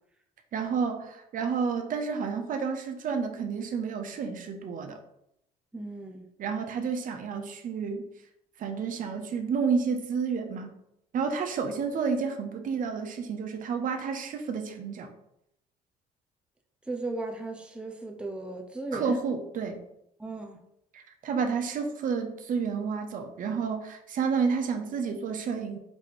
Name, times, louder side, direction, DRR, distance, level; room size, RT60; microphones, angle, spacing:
voice 1, 0.5-5.0 6.4-8.0 8.6-10.7 11.1-15.1 18.9-19.8 20.9-25.8, right 5 dB, 55° right, 5 dB, 0.7 m, -30 dB
voice 2, 5.7-6.3 16.9-19.2 20.2-20.6, right 2 dB, 5° right, 3 dB, 0.6 m, -36 dB
4.5 x 2.7 x 4.2 m, 0.79 s
cardioid pair, 110°, 17 cm